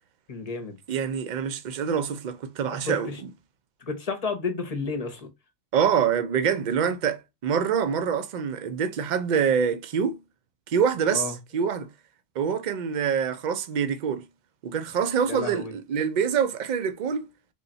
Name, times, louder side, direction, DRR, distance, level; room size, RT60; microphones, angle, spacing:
voice 1, 0.3-0.8 2.9-3.1 3.8-5.3 11.1-11.3 15.3-15.7, left 4 dB, 40° left, 0.8 m, -31 dB
voice 2, 0.9-3.3 5.7-10.2 10.7-11.9 12.4-14.3 14.6-17.3, right 7 dB, 55° right, 0.5 m, -25 dB
3.5 x 2.2 x 3.8 m
omnidirectional pair, 1.2 m